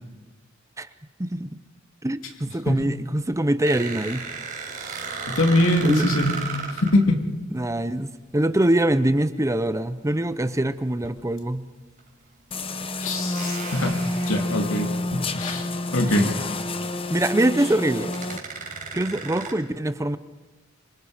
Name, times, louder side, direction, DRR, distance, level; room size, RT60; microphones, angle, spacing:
voice 1, 1.2-1.6 2.0-4.2 4.8-5.0 5.8-6.0 7.5-11.6 16.1-16.2 17.1-18.1 18.9-20.2, right 1 dB, 15° right, 13 dB, 0.7 m, -24 dB
sound 1, 3.6-6.9 9.1-9.3 11.0-11.1 12.0-12.1 13.3-15.2 15.7-15.8 16.1-16.2 17.7-17.8 18.1-19.5, right 4 dB, 45° right, 5.1 m, -35 dB
voice 2, 5.3-6.4 6.8-7.2 13.0-14.0 14.3-15.7 15.9-16.3, left 1 dB, 80° left, 4 dB, 2.7 m, -22 dB
sound 2, 12.5-18.4, left 2 dB, 25° left, 1.0 m, -29 dB
26.5 x 24.0 x 5.0 m, 1.1 s
head